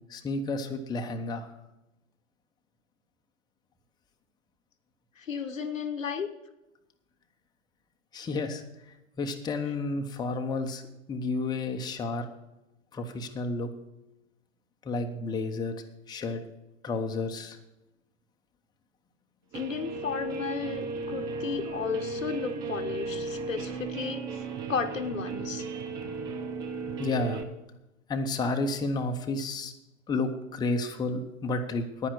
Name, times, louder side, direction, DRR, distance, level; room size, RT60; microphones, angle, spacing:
voice 1, 0.0-1.5 8.1-8.6 9.2-10.8 11.1-12.3 12.9-13.7 14.8-15.7 16.1-16.4 16.8-17.6 27.0-27.4 28.1-29.7 30.1-32.1, left 3 dB, 10° left, 4 dB, 0.9 m, -31 dB
voice 2, 5.2-6.3 19.5-24.3 24.7-25.6, left 6 dB, 80° left, 6 dB, 1.3 m, -33 dB
Guitar, 19.5-27.4, right 3 dB, 10° right, 0.3 m, -35 dB
10.0 x 9.7 x 6.3 m, 0.96 s
figure-of-eight pair, 110°, 39 cm